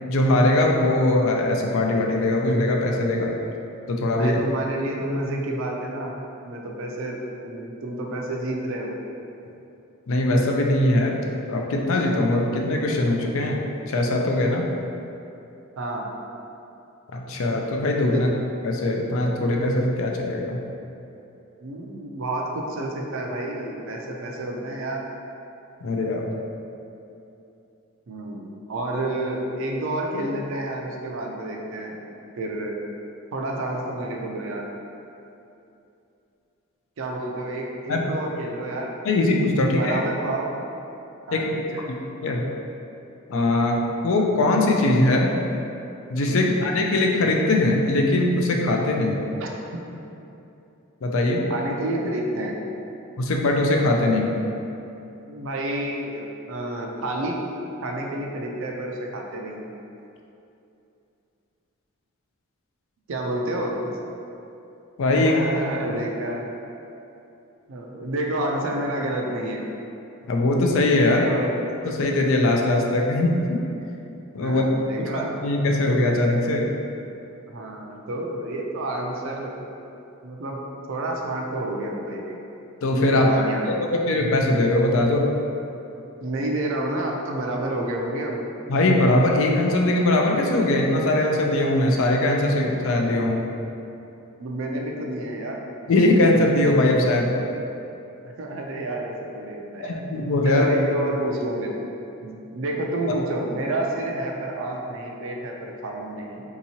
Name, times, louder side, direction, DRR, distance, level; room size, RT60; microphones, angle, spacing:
voice 1, 0.1-3.3 3.9-4.4 10.1-11.2 11.5-14.7 17.1-18.3 18.6-20.6 25.8-26.3 37.9-38.1 39.0-40.0 41.3-41.5 42.2-42.5 43.3-45.3 46.1-49.2 51.0-51.5 53.2-54.4 65.0-65.4 70.3-71.3 71.9-73.6 74.3-74.7 75.0-76.7 82.8-83.5 83.9-85.3 88.7-93.4 95.9-97.3 99.8-100.7, left 2 dB, 65° left, 1 dB, 0.4 m, -21 dB
voice 2, 4.2-7.2 7.4-9.0 15.8-16.1 18.1-18.3 21.6-25.0 28.1-32.1 32.4-32.8 33.3-34.6 37.0-38.9 39.6-40.5 41.3-41.8 46.3-46.5 49.4-49.8 51.5-52.6 55.3-57.4 57.8-59.7 63.1-64.0 65.2-66.5 67.7-69.6 71.1-71.5 74.4-75.4 77.5-79.5 80.2-80.6 80.9-82.4 83.1-83.9 86.2-88.4 94.4-95.6 98.2-100.0 100.4-101.8 102.2-106.4, right 1 dB, 65° right, 0 dB, 0.4 m, -29 dB
3.6 x 2.9 x 2.8 m, 2.8 s
head